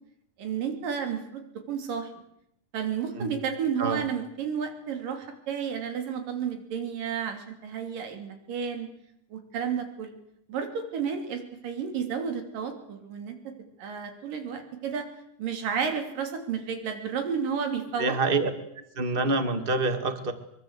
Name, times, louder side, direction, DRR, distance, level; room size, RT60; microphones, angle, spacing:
voice 1, 0.4-1.4 1.7-2.1 2.7-8.9 9.3-10.2 10.5-13.4 13.8-15.1 15.4-18.2, right 7 dB, 80° right, 5 dB, 4.6 m, -32 dB
voice 2, 18.0-18.5 18.9-20.3, right 3 dB, 20° right, 9 dB, 1.5 m, -26 dB
23.5 x 23.0 x 8.2 m, 0.78 s
omnidirectional pair, 3.8 m